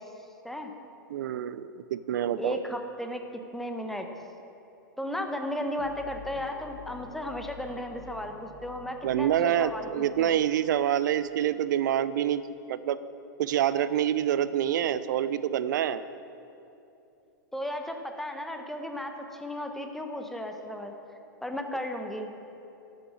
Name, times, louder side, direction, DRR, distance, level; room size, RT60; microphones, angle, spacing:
voice 1, 1.1-2.6 9.0-12.4 12.7-13.0 13.4-16.0, right 10 dB, 65° right, 15 dB, 0.6 m, -26 dB
voice 2, 2.4-3.2 3.5-4.1 5.0-10.4 17.5-20.9 21.4-22.3, left 1 dB, ahead, 4 dB, 1.2 m, -35 dB
sound 1, 5.8-12.2, left 8 dB, 60° left, 1.2 m, -50 dB
13.0 x 9.3 x 6.4 m, 2.8 s
hypercardioid pair, 105°, 11 cm